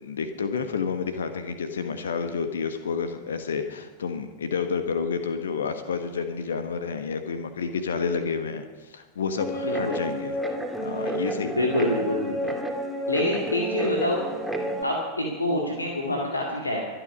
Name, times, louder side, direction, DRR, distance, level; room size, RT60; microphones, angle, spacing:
voice 1, 0.0-10.4 10.8-11.6, left 5 dB, 65° left, 8 dB, 1.2 m, -30 dB
Guitar, 9.4-14.8, right 1 dB, 5° left, 2.3 m, -30 dB
voice 2, 9.6-10.0 11.5-12.6 13.1-14.2 14.8-16.9, left 1 dB, 80° left, -1 dB, 2.2 m, -26 dB
24.0 x 9.2 x 5.5 m, 1.2 s
figure-of-eight pair, 90°, 0 cm